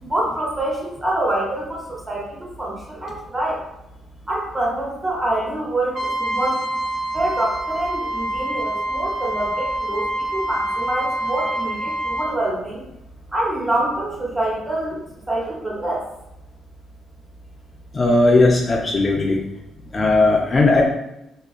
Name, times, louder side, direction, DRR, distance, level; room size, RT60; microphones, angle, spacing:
voice 1, 0.0-3.6 4.3-6.7 7.1-12.8 13.3-15.0 15.3-16.0, right 1 dB, 20° right, -4 dB, 1.0 m, -26 dB
Trumpet, 5.9-12.3, right 1 dB, 65° right, 0.6 m, -26 dB
voice 2, 17.9-19.4 19.9-20.8, left 2 dB, 35° left, 0 dB, 0.4 m, -17 dB
2.7 x 2.3 x 2.4 m, 0.86 s
cardioid pair, 90°, 0 cm